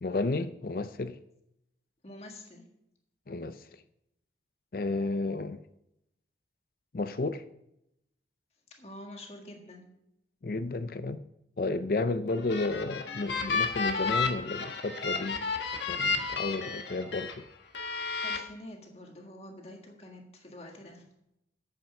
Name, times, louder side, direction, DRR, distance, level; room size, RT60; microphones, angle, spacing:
voice 1, 0.0-1.2 3.3-3.6 4.7-5.6 6.9-7.4 10.4-11.2 11.6-15.5 15.9-17.4, left 3 dB, 50° left, 0.5 m, -32 dB
voice 2, 2.0-2.7 8.8-9.9 12.0-12.3 18.2-21.1, left 1 dB, 35° left, 1.7 m, -47 dB
sound 1, 12.3-17.3 17.7-18.4, left 4 dB, 85° left, 1.3 m, -32 dB
9.2 x 8.2 x 5.9 m
head